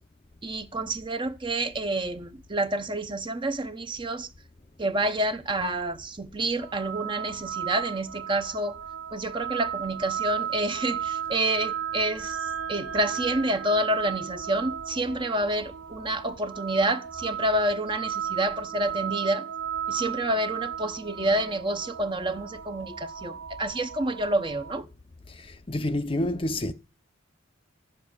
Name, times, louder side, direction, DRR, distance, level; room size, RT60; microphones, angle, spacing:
voice 1, 0.4-4.3 4.8-8.8 9.1-19.4 19.9-24.9, right 1 dB, 25° right, 0.7 m, -28 dB
sound 1, 6.6-24.8, right 8 dB, 75° right, 0.7 m, -35 dB
voice 2, 25.3-26.7, left 1 dB, 25° left, 0.6 m, -29 dB
13.5 x 6.8 x 9.6 m
head